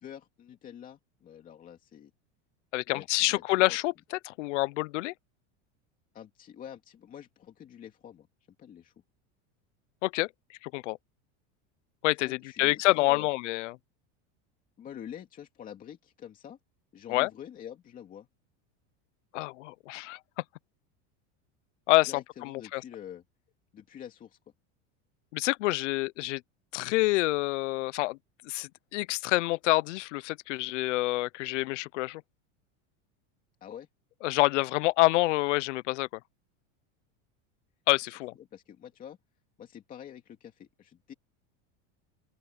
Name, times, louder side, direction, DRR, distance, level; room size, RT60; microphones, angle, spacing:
voice 1, 0.0-2.1 2.9-3.8 6.1-8.3 8.6-8.9 12.2-13.3 14.8-16.6 16.9-18.3 22.0-23.2 23.7-24.4 33.6-33.9 38.4-39.2 39.6-41.1, left 9 dB, 25° left, 2.4 m, -46 dB
voice 2, 2.7-5.1 10.0-10.3 10.6-11.0 12.0-13.8 17.1-17.3 19.3-20.2 21.9-22.1 22.4-22.8 25.3-26.4 26.7-28.2 28.4-32.2 34.2-36.1 37.9-38.3, left 20 dB, 90° left, 0.7 m, -27 dB
open air
supercardioid pair, 170°, 35 cm